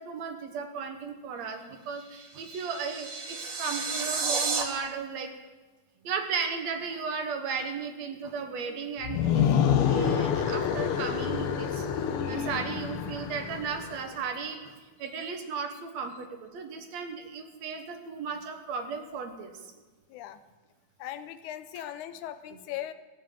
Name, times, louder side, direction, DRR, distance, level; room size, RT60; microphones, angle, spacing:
voice 1, 0.0-5.3 6.0-9.4 9.8-11.9 12.3-19.7, right 5 dB, 70° right, 6 dB, 2.4 m, -35 dB
sound 1, 1.9-4.6, right 4 dB, 45° right, 1.2 m, -32 dB
sound 2, 9.0-14.1, left 8 dB, 65° left, 1.5 m, -27 dB
voice 2, 20.1-20.4 21.0-22.9, left 12 dB, 90° left, 11 dB, 2.2 m, -39 dB
14.5 x 7.5 x 9.1 m, 1.2 s
omnidirectional pair, 3.3 m